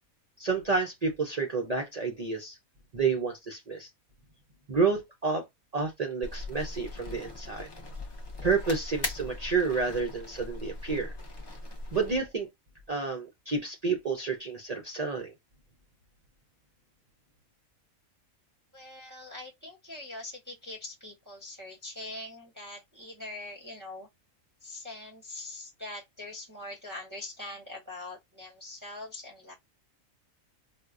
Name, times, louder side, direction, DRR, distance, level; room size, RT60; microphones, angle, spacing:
voice 1, 0.4-2.6 2.9-3.9 4.7-5.4 5.7-7.7 8.4-11.1 11.9-12.5 12.9-15.3, right 4 dB, 60° right, 0.4 m, -30 dB
sound 1, 6.2-12.2, left 2 dB, 35° left, 0.4 m, -40 dB
voice 2, 18.7-24.1 24.6-29.5, left 2 dB, 20° right, 0.6 m, -43 dB
4.1 x 2.2 x 2.4 m
omnidirectional pair, 1.5 m